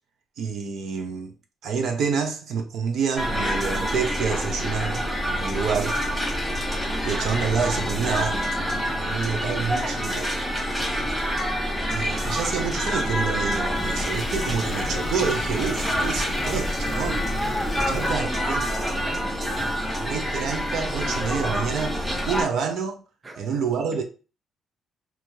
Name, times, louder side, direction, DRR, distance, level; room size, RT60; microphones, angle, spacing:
voice 1, 0.4-1.3 1.6-5.0 5.3-6.0 7.0-8.5 9.0-10.3 11.9-17.3 17.7-18.6 20.0-23.0 23.4-24.0, right 6 dB, 75° right, 0.5 m, -28 dB
sound 1, 3.2-22.4, equal, 5° right, 1.1 m, -27 dB
sound 2, 3.6-4.5 4.9-5.0 5.5-6.6 7.1-7.2 7.6-8.7 9.2-9.3 9.8-10.9 11.4-11.5 11.9-13.0 13.5-13.6 14.0-15.2 15.7-15.8 16.2-17.3 17.8-17.9 18.3-20.0 20.5-20.6, right 2 dB, 45° right, 1.1 m, -42 dB
sound 3, 13.8-18.2, left 3 dB, 40° left, 0.4 m, -34 dB
voice 2, 17.7-18.5 18.7-19.7 23.2-23.5 23.9-24.0, right 2 dB, 30° right, 0.6 m, -40 dB
3.0 x 2.4 x 2.6 m
cardioid pair, 90°, 0 cm